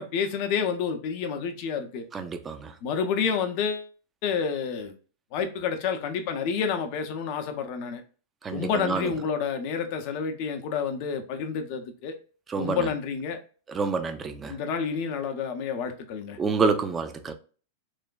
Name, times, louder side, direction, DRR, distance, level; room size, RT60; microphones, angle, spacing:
voice 1, 0.0-2.0 2.8-3.9 4.2-4.9 5.3-8.0 8.5-12.1 12.6-13.4 14.5-16.4, left 6 dB, 45° left, 0.6 m, -29 dB
voice 2, 2.1-2.7 8.4-9.1 12.5-12.9 13.7-14.6 16.4-17.3, right 4 dB, 20° right, 0.4 m, -28 dB
3.2 x 2.1 x 2.3 m
figure-of-eight pair, 95°, 0 cm